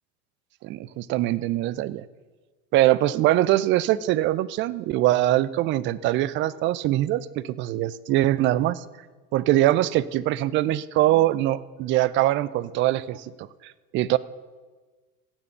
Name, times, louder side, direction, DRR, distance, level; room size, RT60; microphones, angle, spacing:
voice 1, 0.6-2.1 2.7-8.8 9.3-14.2, right 15 dB, 25° right, 19 dB, 0.4 m, -23 dB
16.5 x 7.2 x 6.7 m, 1.3 s
figure-of-eight pair, 80°, 47 cm